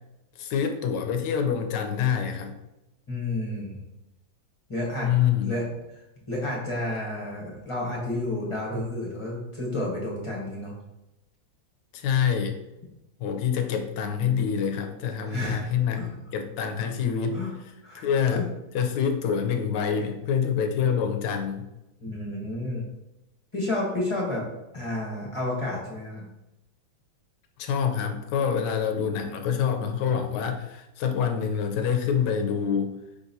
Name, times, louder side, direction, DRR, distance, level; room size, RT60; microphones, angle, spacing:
voice 1, 0.4-2.6 5.0-5.5 11.9-12.6 13.2-16.0 16.3-17.4 17.9-18.5 18.7-21.7 27.6-33.0, left 7 dB, 75° left, 5 dB, 1.1 m, -26 dB
voice 2, 3.1-3.8 4.7-5.1 5.4-5.7 6.3-10.7 15.2-15.6 15.9-16.1 17.3-17.5 17.8-18.5 22.0-22.9 23.5-24.5 24.7-26.3, left 1 dB, 30° left, -4 dB, 0.6 m, -31 dB
5.0 x 3.8 x 2.7 m, 0.93 s
omnidirectional pair, 2.0 m